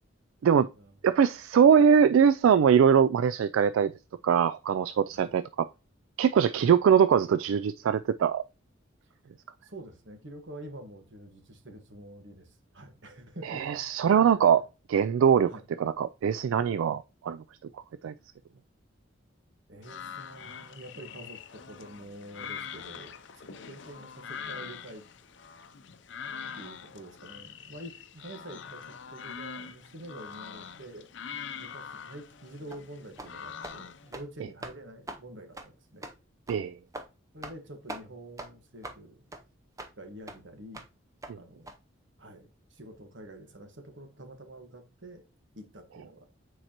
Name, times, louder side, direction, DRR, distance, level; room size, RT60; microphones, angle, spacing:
voice 1, 1.0-3.9 4.2-5.7 6.2-8.4 13.4-14.6 14.9-15.5 15.8-17.4 18.0-18.1 36.5-36.7 41.3-41.4, right 7 dB, 80° right, 0.3 m, -22 dB
voice 2, 9.6-13.8 14.1-14.4 15.0-15.1 15.5-15.6 19.7-23.2 23.4-25.0 26.5-31.1 31.6-36.1 37.3-39.2 40.0-40.8 41.3-41.7 42.2-45.2 45.5-46.3, right 1 dB, 65° right, 1.4 m, -47 dB
sound 1, 19.8-34.1, left 7 dB, 65° left, 0.6 m, -43 dB
sound 2, 32.7-32.8 33.2-33.3 33.6-33.8 34.1-34.3 34.6-34.8 35.1-35.2 35.6-35.7 36.0-36.2 36.5-36.6 36.9-37.1 37.4-37.6 37.9-38.0 38.4-38.5 38.8-39.0 39.3-39.4 39.8-39.9 40.3-40.4 40.7-40.9 41.2-41.3 41.7-41.8, right 1 dB, 15° right, 0.6 m, -41 dB
8.9 x 4.6 x 2.9 m
head